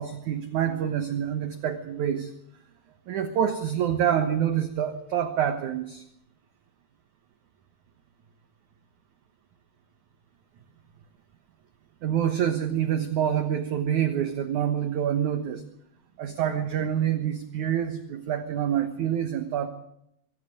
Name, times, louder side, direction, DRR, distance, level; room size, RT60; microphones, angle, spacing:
voice 1, 0.0-2.3 3.1-6.0 12.0-15.6 16.2-19.7, right 9 dB, 65° right, 8 dB, 2.2 m, -27 dB
24.5 x 14.5 x 9.2 m, 0.76 s
omnidirectional pair, 4.8 m